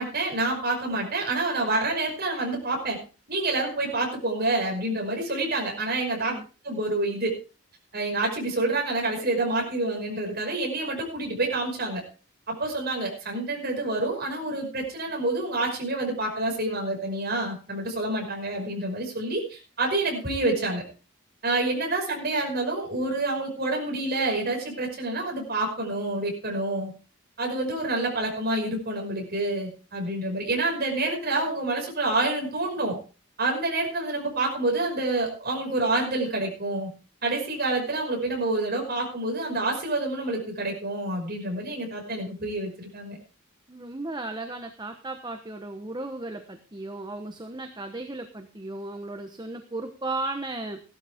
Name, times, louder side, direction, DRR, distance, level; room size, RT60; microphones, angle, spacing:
voice 1, 0.0-3.0 3.3-6.4 6.6-7.3 7.9-12.0 12.5-20.8 21.4-26.9 27.4-33.0 33.4-36.9 37.2-43.2, right 2 dB, 45° right, 1 dB, 5.6 m, -28 dB
voice 2, 43.7-50.8, right 2 dB, 20° right, 6 dB, 1.0 m, -35 dB
16.0 x 12.0 x 3.6 m, 0.35 s
head